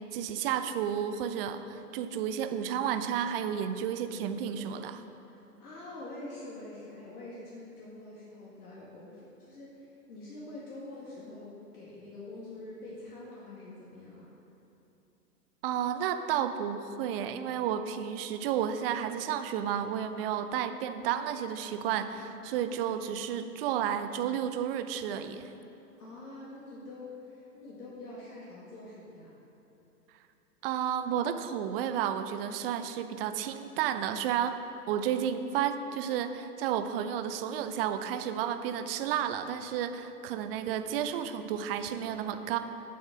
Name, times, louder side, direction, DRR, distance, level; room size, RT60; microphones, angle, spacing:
voice 1, 0.1-5.0 15.6-25.5 30.6-34.6 34.9-42.6, right 9 dB, 40° right, 9 dB, 0.6 m, -32 dB
voice 2, 5.3-14.3 26.0-29.3, left 2 dB, 70° left, -6 dB, 2.1 m, -45 dB
8.5 x 7.3 x 6.3 m, 3.0 s
figure-of-eight pair, 105°, 47 cm